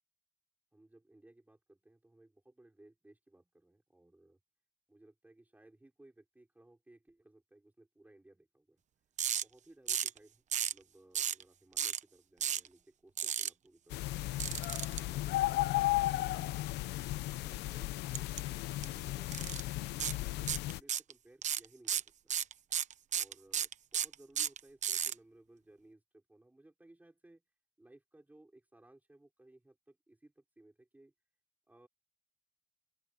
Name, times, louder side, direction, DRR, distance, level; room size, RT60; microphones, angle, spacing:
voice 1, 0.7-4.4 4.9-8.8 9.4-14.4 15.0-16.8 17.4-19.5 19.9-22.3 23.1-27.4 27.8-31.1 31.7-31.9, right 1 dB, 10° right, 5.9 m, -61 dB
sound 1, 9.2-9.4 9.9-10.2 10.5-10.8 11.2-11.4 11.8-12.0 12.4-12.7 13.2-13.5 14.4-15.0 18.1-18.4 18.7-18.9 19.3-19.6 20.0-20.2 20.5-21.1 21.4-25.1, right 9 dB, 45° right, 1.0 m, -33 dB
sound 2, 13.9-20.8, left 17 dB, 85° left, 1.0 m, -35 dB
open air
cardioid pair, 110°, 17 cm